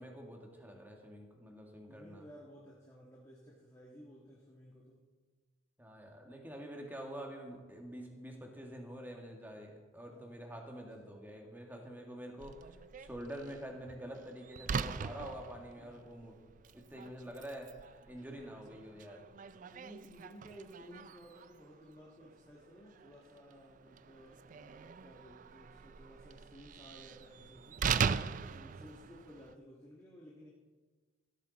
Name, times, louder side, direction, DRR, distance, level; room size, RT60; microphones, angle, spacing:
voice 1, 0.0-2.2 5.8-16.4 16.7-19.3, equal, 10° right, 1 dB, 1.8 m, -47 dB
voice 2, 1.9-5.0 9.9-10.3 10.9-11.1 15.8-16.0 19.0-19.2 19.6-27.9 28.1-30.5, equal, 15° left, -4 dB, 1.6 m, -56 dB
Slam, 12.4-29.5, right 6 dB, 40° right, 0.3 m, -41 dB
16.5 x 12.5 x 4.1 m, 1.4 s
head